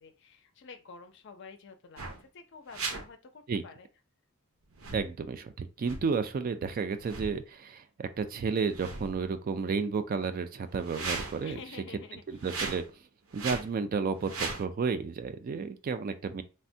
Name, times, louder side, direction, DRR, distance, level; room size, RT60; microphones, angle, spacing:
voice 1, 0.0-3.9 11.4-12.2, left 4 dB, 55° left, 0.5 m, -49 dB
sound 1, 2.0-2.2 2.7-3.0 4.7-5.1 5.8-6.0 7.0-7.4 8.5-9.3 10.7-11.5 12.4-12.9 13.3-13.7 14.2-14.6, right 4 dB, 75° right, 0.7 m, -37 dB
voice 2, 4.9-11.6 12.3-12.8 13.3-16.4, right 5 dB, 40° right, 0.3 m, -32 dB
3.3 x 2.1 x 2.6 m
head